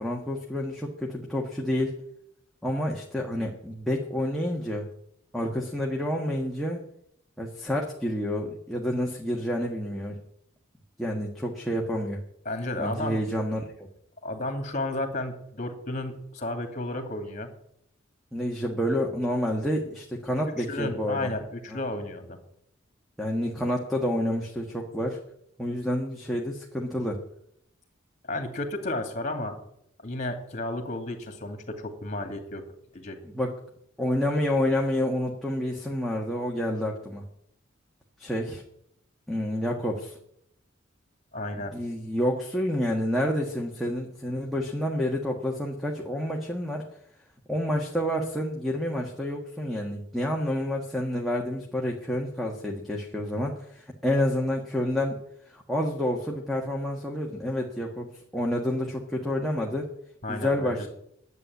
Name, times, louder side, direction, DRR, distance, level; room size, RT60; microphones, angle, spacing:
voice 1, 0.0-1.9 2.6-4.8 5.3-6.8 7.4-10.2 11.0-12.2 12.8-13.7 18.3-21.3 21.7-21.8 23.2-25.2 25.6-27.2 33.2-33.5 34.0-37.2 38.2-38.6 39.3-40.2 41.5-46.8 47.5-55.2 55.5-59.9 60.3-60.9, left 1 dB, ahead, -2 dB, 1.5 m, -29 dB
voice 2, 12.5-13.2 14.2-17.5 20.6-22.4 28.3-29.6 30.0-32.6 32.9-33.2 41.3-41.7 60.2-60.9, left 1 dB, 40° left, 6 dB, 2.5 m, -33 dB
11.0 x 8.3 x 9.5 m, 0.73 s
head